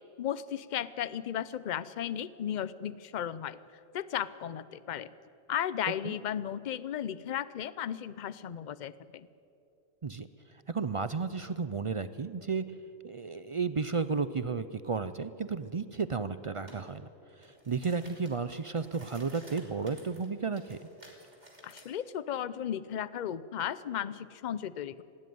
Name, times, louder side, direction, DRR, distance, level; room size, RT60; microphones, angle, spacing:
voice 1, 0.2-3.6 3.9-5.1 5.5-9.3 21.6-25.0, left 10 dB, 50° left, 17 dB, 0.6 m, -35 dB
voice 2, 10.7-12.6 13.0-17.1 17.4-20.8, right 5 dB, 60° right, 13 dB, 0.3 m, -33 dB
sound 1, 16.7-16.8 17.3-21.9, right 1 dB, 30° right, 3.2 m, -54 dB
19.5 x 16.0 x 9.4 m, 2.7 s
omnidirectional pair, 1.4 m